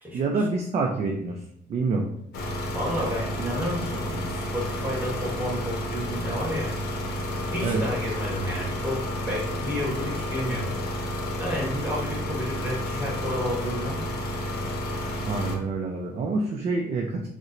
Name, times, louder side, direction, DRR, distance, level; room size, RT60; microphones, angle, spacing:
voice 1, 0.1-1.4 1.7-2.1 7.6-7.8 15.3-17.3, right 3 dB, 40° right, 1 dB, 0.4 m, -27 dB
sound 1, 2.3-15.6, equal, 70° left, 0.7 m, -31 dB
voice 2, 2.7-6.7 7.5-10.7 11.4-14.0, left 1 dB, 10° right, -3 dB, 1.3 m, -31 dB
4.0 x 2.1 x 2.5 m, 0.70 s
cardioid pair, 110°, 17 cm